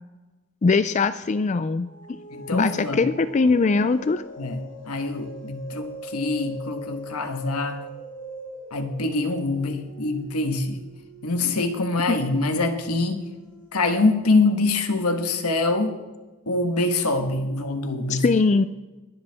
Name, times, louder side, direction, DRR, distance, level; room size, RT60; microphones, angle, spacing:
voice 1, 0.6-1.9 2.5-4.2 12.1-12.2 18.1-18.7, left 4 dB, 35° left, 13 dB, 0.3 m, -21 dB
sound 1, 1.8-14.6, left 1 dB, 55° left, 3.4 m, -42 dB
voice 2, 2.3-3.0 4.4-7.8 8.7-10.9 11.2-13.2 13.7-16.0 16.5-18.2, left 2 dB, 90° left, 6 dB, 1.4 m, -24 dB
22.5 x 7.9 x 3.5 m, 1.2 s
head